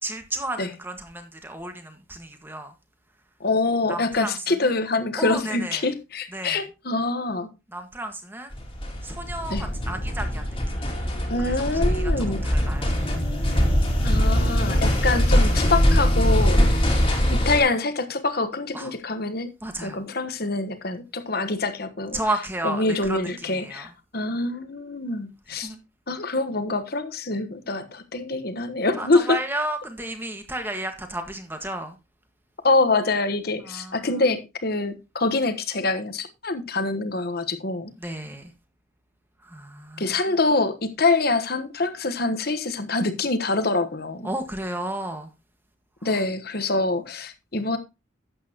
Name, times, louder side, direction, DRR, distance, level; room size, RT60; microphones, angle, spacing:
voice 1, 0.0-2.7 3.9-4.7 5.2-5.9 6.3-6.6 7.7-8.6 9.0-12.9 18.7-18.9 19.6-20.0 22.1-23.9 25.5-25.8 29.0-32.0 33.6-34.2 38.0-38.5 39.4-40.4 44.2-45.3 46.0-46.2, right 1 dB, 10° right, 1.6 m, -33 dB
voice 2, 3.4-7.5 9.5-9.6 11.3-12.5 14.0-16.9 17.3-19.5 19.8-22.2 22.6-25.7 26.1-29.4 32.6-37.9 40.0-44.3 46.0-47.8, left 3 dB, 50° left, 1.2 m, -25 dB
sound 1, 8.5-17.6, equal, 25° left, 2.3 m, -22 dB
12.0 x 8.5 x 2.9 m
head